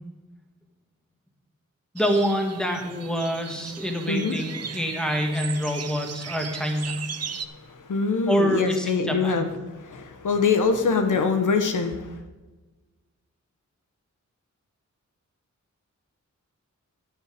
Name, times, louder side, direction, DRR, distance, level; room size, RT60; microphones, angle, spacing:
voice 1, 1.9-7.1 8.3-9.5, equal, 5° left, 3 dB, 1.6 m, -26 dB
sound 1, 2.0-7.5, right 6 dB, 55° right, 0.7 m, -37 dB
voice 2, 7.3-12.2, left 4 dB, 80° left, 6 dB, 1.1 m, -24 dB
11.0 x 9.2 x 5.1 m, 1.2 s
wide cardioid pair, 130°, 30 cm